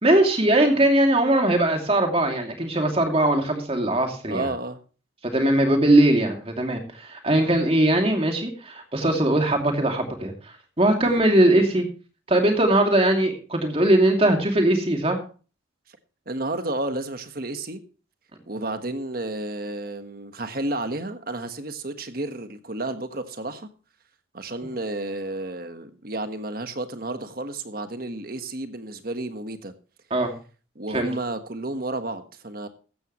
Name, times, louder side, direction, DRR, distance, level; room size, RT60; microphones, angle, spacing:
voice 1, 0.0-4.5 5.2-11.8 12.3-15.2 30.1-30.3 30.9-31.1, right 1 dB, 30° right, 2.7 m, -20 dB
voice 2, 4.3-4.8 11.0-11.3 16.3-17.8 18.5-23.7 24.3-29.7 30.7-32.7, right 2 dB, 50° right, 1.4 m, -31 dB
15.0 x 12.5 x 3.1 m
head